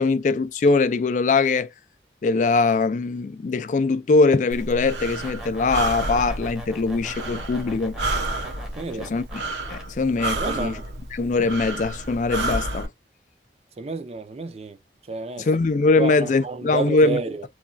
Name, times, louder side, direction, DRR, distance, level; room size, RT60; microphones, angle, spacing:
voice 1, 0.0-1.7 2.2-8.0 9.0-9.4 9.7-10.8 11.1-12.9 15.4-17.2, left 3 dB, 45° left, 0.3 m, -22 dB
Breathing, 4.5-12.9, right 2 dB, 85° right, 0.7 m, -30 dB
sound 1, 4.9-9.8, equal, 5° right, 0.7 m, -42 dB
voice 2, 8.8-9.1 10.4-10.8 13.8-14.8 15.1-15.5 16.0-17.4, right 4 dB, 35° right, 0.4 m, -30 dB
3.1 x 2.3 x 2.5 m
head